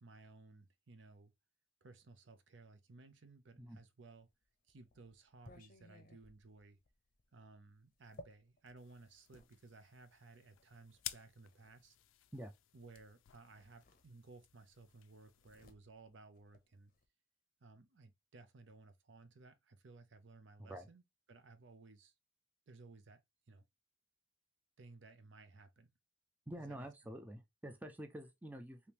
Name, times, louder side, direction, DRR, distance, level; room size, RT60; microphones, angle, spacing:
voice 1, 0.0-1.3 1.8-4.3 4.7-6.8 7.3-12.0 12.7-16.9 17.6-21.0 21.3-22.1 22.7-23.2 23.5-23.6 24.8-25.9 26.7-26.9, right 3 dB, 65° right, 0.6 m, -59 dB
sound 1, 4.2-9.5 10.4-11.8 13.0-13.1 13.4-14.6 14.8-17.1, left 1 dB, 45° left, 0.6 m, -61 dB
sound 2, 8.8-15.6, left 14 dB, 85° left, 0.4 m, -54 dB
voice 2, 26.5-28.8, right 1 dB, 10° right, 0.4 m, -48 dB
3.5 x 2.9 x 2.8 m
head